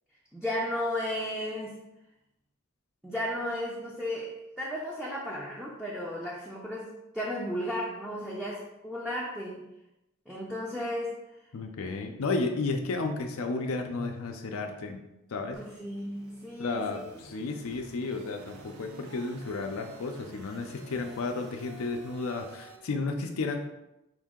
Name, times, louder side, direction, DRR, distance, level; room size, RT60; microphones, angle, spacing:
voice 1, 0.3-1.8 3.0-9.7 10.3-11.2 15.5-17.1, left 1 dB, 5° right, -5 dB, 0.5 m, -34 dB
voice 2, 11.5-15.0 15.3-15.6 16.6-23.6, left 3 dB, 85° left, 4 dB, 0.5 m, -33 dB
sound 1, 15.5-22.8, right 1 dB, 90° right, 0.6 m, -50 dB
5.1 x 2.7 x 3.6 m, 0.92 s
head